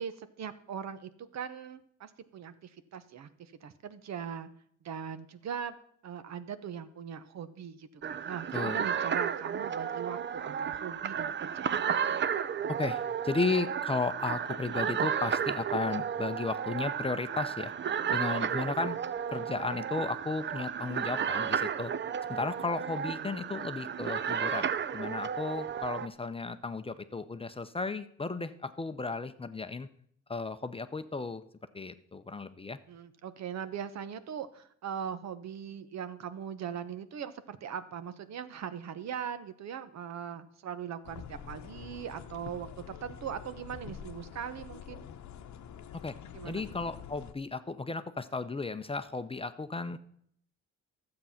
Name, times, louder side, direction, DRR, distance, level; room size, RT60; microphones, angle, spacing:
voice 1, 0.0-4.5 4.8-5.8 6.0-11.7 23.2-23.4 32.9-45.1 46.3-46.6, right 8 dB, 60° right, 13 dB, 0.9 m, -40 dB
sound 1, 8.0-26.1, right 8 dB, 40° right, 0.5 m, -33 dB
voice 2, 8.5-8.9 12.8-17.7 18.1-19.0 19.3-21.9 22.3-29.9 30.3-31.4 31.7-32.8 46.0-46.2 46.4-50.0, left 3 dB, 20° left, 11 dB, 0.6 m, -34 dB
sound 2, 41.0-47.3, left 8 dB, 70° left, 0.9 m, -46 dB
12.0 x 7.7 x 5.7 m, 0.67 s
cardioid pair, 90°, 30 cm